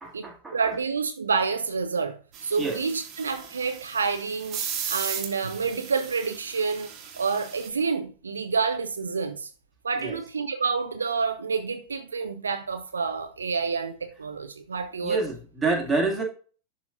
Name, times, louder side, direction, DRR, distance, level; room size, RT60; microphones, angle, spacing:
voice 1, 0.0-0.7 2.6-2.8 10.0-10.2 15.0-16.2, right 3 dB, 10° right, 2.2 m, -28 dB
voice 2, 0.5-6.9 7.1-9.5 9.8-15.2, right 5 dB, 75° right, 0.6 m, -28 dB
sound 1, 2.3-7.7, right 8 dB, 35° right, 1.7 m, -37 dB
11.5 x 4.1 x 2.5 m
figure-of-eight pair, 90°, 0 cm